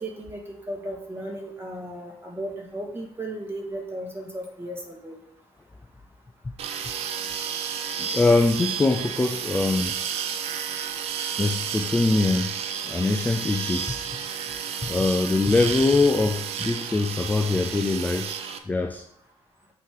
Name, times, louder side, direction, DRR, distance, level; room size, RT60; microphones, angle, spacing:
voice 1, 0.0-5.2, right 1 dB, 20° right, -1 dB, 1.9 m, -35 dB
sound 1, 6.6-18.6, right 8 dB, 70° right, 0.6 m, -31 dB
voice 2, 8.0-10.0 11.4-12.5 12.9-14.0 14.8-19.1, left 3 dB, 15° left, 5 dB, 0.4 m, -23 dB
8.3 x 3.1 x 3.7 m, 0.69 s
cardioid pair, 95°, 11 cm